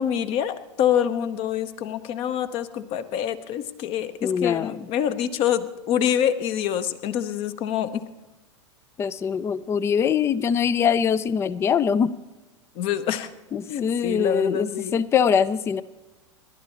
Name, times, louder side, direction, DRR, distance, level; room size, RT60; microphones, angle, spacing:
voice 1, 0.0-8.0 12.7-13.3 13.7-14.9, left 9 dB, 35° left, 12 dB, 0.9 m, -26 dB
voice 2, 4.2-4.8 9.0-12.1 13.5-15.8, left 7 dB, 15° left, 19 dB, 0.4 m, -23 dB
29.0 x 12.0 x 2.9 m, 1.1 s
figure-of-eight pair, 95°, 16 cm